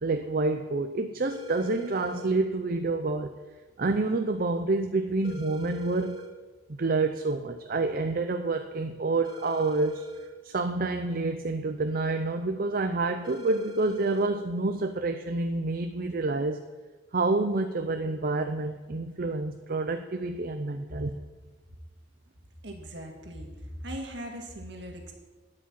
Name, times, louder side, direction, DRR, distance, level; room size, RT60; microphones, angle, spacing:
voice 1, 0.0-3.3 3.8-6.2 6.7-10.0 10.4-16.6 17.1-21.1, right 3 dB, 50° right, 7 dB, 0.6 m, -28 dB
sound 1, 1.2-2.3 5.2-6.3 9.2-10.3 13.2-14.3, left 2 dB, 25° right, 2.5 m, -41 dB
voice 2, 22.6-23.5 23.8-25.1, right 1 dB, 65° right, 3 dB, 2.1 m, -39 dB
10.0 x 8.4 x 7.6 m, 1.3 s
head